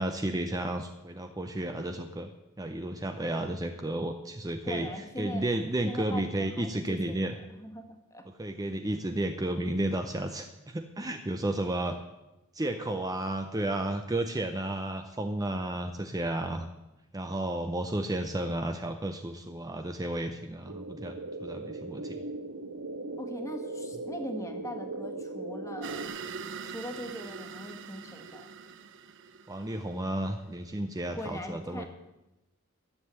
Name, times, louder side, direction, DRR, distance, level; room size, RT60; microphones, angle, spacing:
voice 1, 0.0-2.3 2.6-4.9 5.2-7.3 8.4-12.0 12.5-16.7 17.1-22.2 29.5-31.9, right 1 dB, 15° right, 6 dB, 0.6 m, -32 dB
voice 2, 4.6-5.5 5.8-8.3 23.2-26.1 26.6-28.5 31.1-31.9, equal, 15° left, 5 dB, 1.6 m, -41 dB
sound 1, 20.6-26.1, right 2 dB, 85° right, 1.5 m, -39 dB
sound 2, 25.8-30.4, right 6 dB, 60° right, 0.7 m, -43 dB
12.5 x 7.8 x 8.3 m, 0.97 s
head